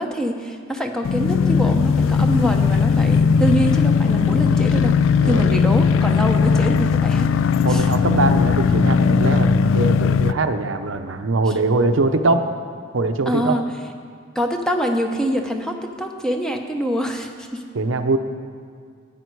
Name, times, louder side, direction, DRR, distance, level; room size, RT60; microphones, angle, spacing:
voice 1, 0.0-5.0 5.3-7.3 7.7-7.8 13.3-13.6 14.3-17.6, equal, 5° left, 3 dB, 0.8 m, -24 dB
sound 1, 1.0-10.3, left 5 dB, 75° left, 0.3 m, -18 dB
voice 2, 5.2-5.6 7.6-12.5 12.9-13.6 17.7-18.2, right 3 dB, 85° right, 7 dB, 0.7 m, -22 dB
14.0 x 9.3 x 4.7 m, 2.1 s
head